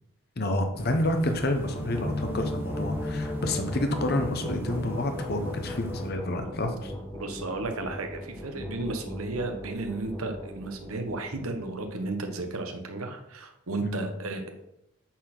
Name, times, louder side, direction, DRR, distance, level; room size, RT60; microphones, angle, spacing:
voice 1, 0.4-6.9 13.8-14.1, left 1 dB, 45° left, 5 dB, 1.0 m, -29 dB
sound 1, 0.8-6.1, right 1 dB, 10° right, 0.8 m, -41 dB
sound 2, 1.5-12.1, left 1 dB, 10° left, 1.2 m, -37 dB
voice 2, 7.1-14.5, right 2 dB, 85° right, 6 dB, 1.2 m, -34 dB
8.2 x 4.4 x 6.0 m, 0.83 s
head